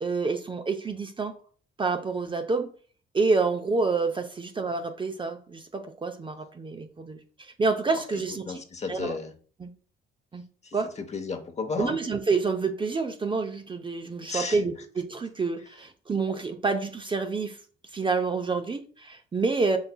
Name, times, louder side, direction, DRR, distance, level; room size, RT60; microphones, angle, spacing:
voice 1, 0.0-1.3 1.8-2.7 3.1-8.4 8.9-9.2 9.6-9.7 10.3-10.4 10.7-10.9 11.8-17.6 17.9-19.8, right 4 dB, 25° right, 0.5 m, -28 dB
voice 2, 7.9-9.3 10.6-12.0 14.3-14.8, left 4 dB, 35° left, 0.8 m, -34 dB
5.7 x 3.9 x 2.2 m
cardioid pair, 90°, 20 cm